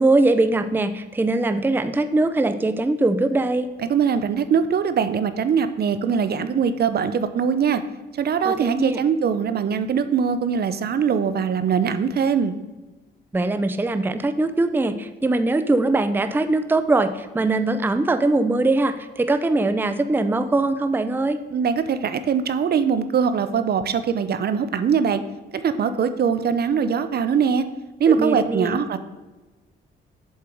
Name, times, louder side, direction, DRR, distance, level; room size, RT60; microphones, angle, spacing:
voice 1, 0.0-3.7 8.4-9.0 13.3-21.4 28.1-28.8, right 2 dB, 10° right, 10 dB, 0.5 m, -21 dB
voice 2, 3.9-7.8 8.1-12.5 21.5-25.2 25.5-27.6 28.0-29.0, right 7 dB, 55° right, 11 dB, 0.7 m, -22 dB
7.4 x 7.3 x 4.6 m, 1.2 s
cardioid pair, 90°, 20 cm